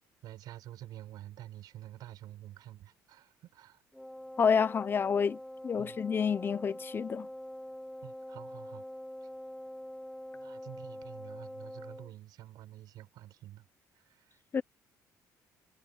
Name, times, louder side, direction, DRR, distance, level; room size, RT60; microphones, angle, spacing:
voice 1, 0.2-3.8 5.8-6.0 8.0-8.8 9.2-9.3 10.3-13.7 13.9-14.4, right 13 dB, 70° right, 7.9 m, -49 dB
Wind instrument woodwind instrument, 3.9-12.1, left 1 dB, 5° left, 0.8 m, -45 dB
voice 2, 4.4-5.4 5.6-7.3 14.5-14.6, left 6 dB, 30° left, 1.0 m, -28 dB
cardioid pair, 120°, 7 cm